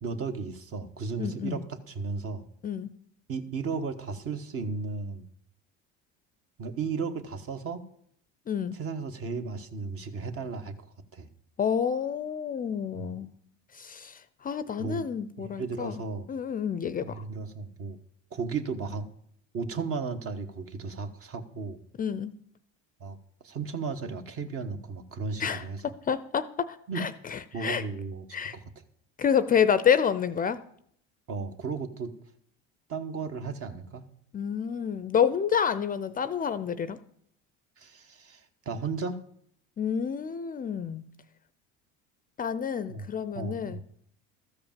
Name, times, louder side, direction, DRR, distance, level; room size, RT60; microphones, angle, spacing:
voice 1, 0.0-2.4 3.3-5.2 6.6-7.8 8.7-10.7 11.1-11.3 12.9-13.2 14.8-15.1 15.4-16.3 17.0-18.0 18.3-19.1 19.5-21.8 23.0-23.2 23.4-25.8 26.9-27.1 27.5-28.6 31.3-32.1 32.9-34.0 37.8-39.2 42.9-43.0 43.3-43.8, right 4 dB, 45° right, 8 dB, 1.3 m, -35 dB
voice 2, 1.2-1.6 2.6-2.9 8.5-8.8 11.6-13.3 13.8-16.0 16.3-17.2 22.0-22.3 25.4-25.6 26.1-27.8 28.3-28.5 29.2-30.6 34.3-37.0 39.8-41.0 42.4-43.8, left 7 dB, 25° left, 14 dB, 0.5 m, -28 dB
13.0 x 5.0 x 7.4 m, 0.67 s
supercardioid pair, 95°, 32 cm